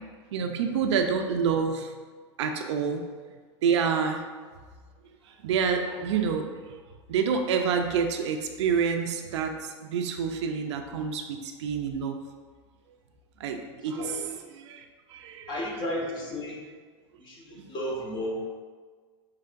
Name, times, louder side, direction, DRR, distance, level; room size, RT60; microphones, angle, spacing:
voice 1, 0.3-1.9 2.4-3.0 3.6-4.2 5.4-6.4 7.1-12.2 13.4-13.6 13.8-14.2 14.5-14.8 15.1-15.6 17.5-17.7, right 6 dB, 80° right, 5 dB, 0.5 m, -27 dB
voice 2, 13.9-14.3 15.5-16.6 17.2-18.5, equal, 30° left, -2 dB, 1.1 m, -33 dB
5.6 x 3.3 x 2.5 m, 1.5 s
hypercardioid pair, 115°, 15 cm